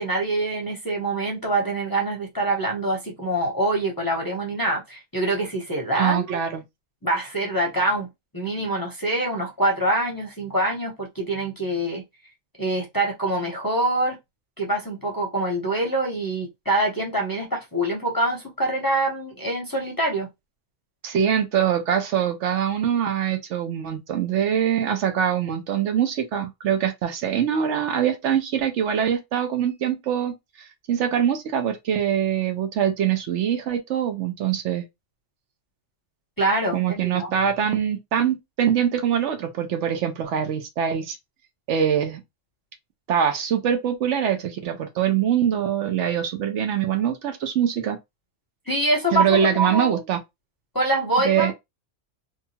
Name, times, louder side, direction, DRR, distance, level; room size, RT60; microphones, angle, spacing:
voice 1, 0.0-6.4 7.0-8.1 8.3-12.0 12.6-14.2 14.6-20.3 36.4-37.3 48.7-50.0 50.7-51.5, right 1 dB, 20° left, 0.7 m, -25 dB
voice 2, 5.9-6.6 21.0-30.3 30.9-34.8 36.7-41.2 41.7-42.2 43.1-48.0 49.1-50.2 51.2-51.5, right 9 dB, 75° right, 0.9 m, -23 dB
2.7 x 2.3 x 2.7 m
omnidirectional pair, 1.3 m